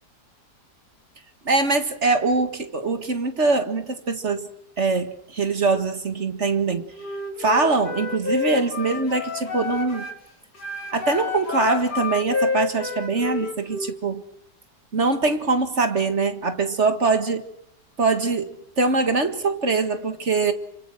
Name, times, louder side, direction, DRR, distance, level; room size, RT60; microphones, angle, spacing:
voice 1, 1.5-4.5 4.8-6.8 7.4-10.1 10.9-14.2 14.9-17.5 18.0-20.5, right 3 dB, 40° right, 8 dB, 2.0 m, -23 dB
Wind instrument woodwind instrument, 6.9-10.2 10.6-14.0, left 4 dB, 70° left, 4.4 m, -29 dB
26.5 x 26.0 x 6.2 m, 0.75 s
omnidirectional pair, 1.8 m